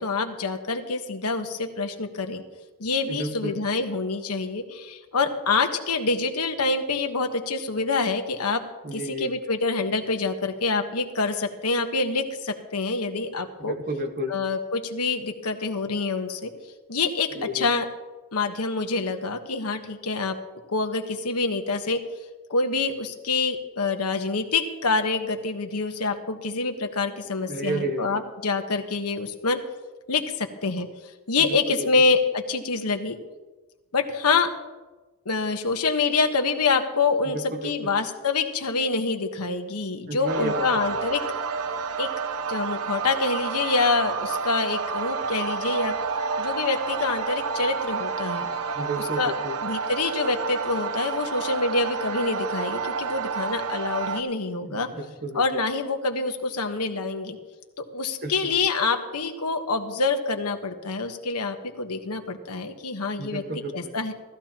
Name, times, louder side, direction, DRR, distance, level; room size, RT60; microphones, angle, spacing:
voice 1, 0.0-2.4 2.8-8.6 8.9-13.8 14.3-16.5 16.9-17.9 18.3-20.4 20.7-22.0 22.5-29.6 30.1-30.9 31.3-33.2 33.9-34.5 35.2-41.2 42.0-42.1 42.5-46.0 46.4-48.5 49.0-49.3 49.6-54.9 55.3-57.4 57.8-63.4 63.7-64.1, left 4 dB, 80° left, 5 dB, 1.3 m, -26 dB
voice 2, 3.1-3.6 8.8-9.3 13.6-14.4 17.4-17.7 27.5-28.2 31.8-31.9 37.5-37.7 40.1-40.9 48.8-49.5 54.7-55.6 58.2-58.5 63.2-63.9, right 1 dB, 45° right, 4 dB, 1.5 m, -32 dB
sound 1, 40.3-54.2, right 5 dB, 75° right, 0.8 m, -29 dB
18.5 x 13.5 x 3.0 m, 1.2 s
head